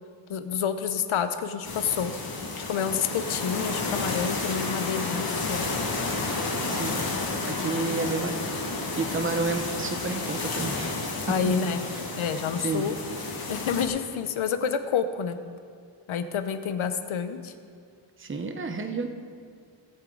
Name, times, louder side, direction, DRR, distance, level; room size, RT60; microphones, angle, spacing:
voice 1, 0.3-2.1 2.6-5.6 11.3-11.8 12.2-13.0 13.5-15.4 16.1-17.5, left 7 dB, 85° left, 9 dB, 0.9 m, -28 dB
sound 1, 1.6-13.9, left 3 dB, 50° left, 1.9 m, -31 dB
voice 2, 6.7-7.0 7.4-8.6 9.0-11.1 12.3-12.9 18.2-19.1, right 3 dB, 25° right, 5 dB, 0.9 m, -31 dB
17.5 x 8.2 x 3.9 m, 2.2 s
wide cardioid pair, 95°, 47 cm